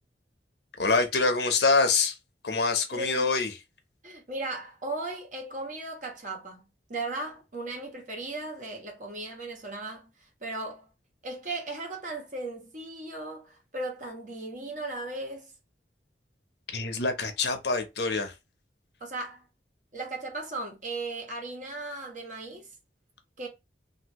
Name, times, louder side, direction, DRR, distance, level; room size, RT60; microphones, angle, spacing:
voice 1, 0.8-2.2 2.4-3.5 16.7-18.3, left 4 dB, 70° left, 0.8 m, -25 dB
voice 2, 2.9-3.4 4.0-6.6 6.9-10.1 10.4-10.9 11.2-15.5 19.0-19.5 19.9-22.7 23.4-23.5, right 2 dB, 45° right, 1.2 m, -36 dB
2.8 x 2.7 x 3.0 m
head